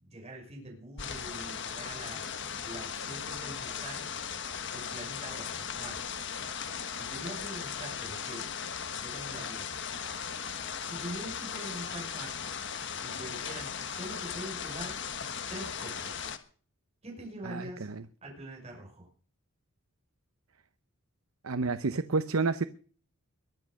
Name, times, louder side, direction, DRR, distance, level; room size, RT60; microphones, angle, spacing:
voice 1, 0.0-4.1 4.7-6.2 7.0-8.5 9.0-9.7 10.8-12.5 13.0-15.0 15.5-16.2 17.0-17.9 18.2-19.1, right 1 dB, 30° right, 5.8 m, -44 dB
sound 1, 1.0-16.4, left 7 dB, 55° left, 1.4 m, -37 dB
voice 2, 17.4-18.0 21.4-22.6, right 4 dB, 70° right, 0.7 m, -30 dB
22.5 x 8.5 x 6.4 m
head